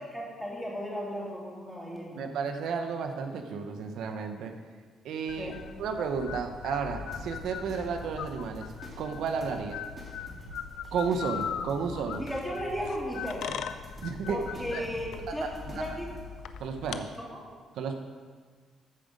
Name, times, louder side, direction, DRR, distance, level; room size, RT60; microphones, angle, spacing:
voice 1, 0.1-2.2 5.4-5.6 12.2-13.6 14.3-16.1 17.1-17.4, equal, ahead, -5 dB, 3.3 m, -36 dB
voice 2, 2.1-4.5 5.0-5.5 5.8-8.7 9.0-9.8 10.9-12.2 14.0-14.4 14.7-14.9 15.3-15.4 15.7-15.8 16.6-17.1 17.8-18.0, right 5 dB, 80° right, 5 dB, 0.8 m, -32 dB
sound 1, 5.3-17.0, left 8 dB, 80° left, 0.5 m, -40 dB
sound 2, 7.1-16.3, right 1 dB, 35° right, 2.6 m, -48 dB
14.0 x 5.1 x 5.3 m, 1.5 s
cardioid pair, 90°, 0 cm